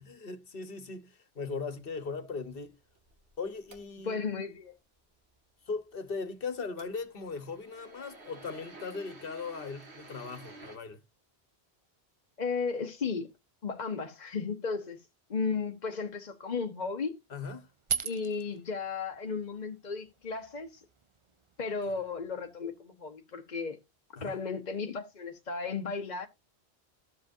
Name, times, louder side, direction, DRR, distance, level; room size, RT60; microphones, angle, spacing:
voice 1, 0.0-2.8 3.4-4.2 5.7-11.0 17.3-17.7 24.2-24.4, left 4 dB, 60° left, 1.3 m, -38 dB
sound 1, 1.8-4.3 6.6-10.8, right 2 dB, 90° right, 2.1 m, -52 dB
voice 2, 4.0-4.7 12.4-13.3 13.6-15.0 15.3-17.2 18.0-20.8 21.6-23.8 24.2-26.3, left 5 dB, 45° left, 1.0 m, -34 dB
sound 2, 17.6-22.8, right 6 dB, 35° right, 0.6 m, -41 dB
13.0 x 7.6 x 2.7 m
omnidirectional pair, 1.1 m